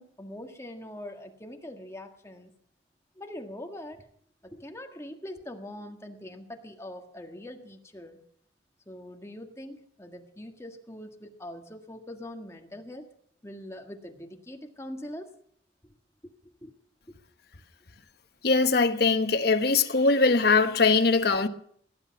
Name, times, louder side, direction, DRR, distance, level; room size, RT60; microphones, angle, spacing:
voice 1, 0.0-2.5 3.1-4.1 4.4-8.2 8.8-13.1 13.4-15.3 15.8-15.9 16.2-16.7 17.1-17.2, left 1 dB, 15° left, 1.7 m, -43 dB
voice 2, 18.4-21.5, left 4 dB, 55° left, 1.2 m, -21 dB
19.0 x 11.0 x 5.9 m
head